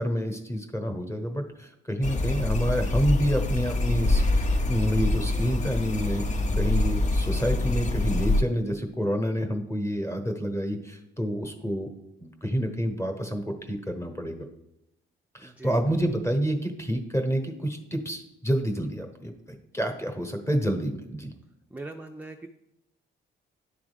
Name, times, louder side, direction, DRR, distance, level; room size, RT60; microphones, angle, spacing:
voice 1, 0.0-11.9 12.2-14.4 15.3-19.3 19.7-21.3, equal, 15° left, 4 dB, 1.1 m, -28 dB
sound 1, 2.0-8.4, left 2 dB, 35° left, 0.7 m, -25 dB
voice 2, 15.4-15.8 21.7-22.5, right 2 dB, 5° right, 4 dB, 0.4 m, -41 dB
10.5 x 3.5 x 3.5 m, 0.83 s
cardioid pair, 90°, 20 cm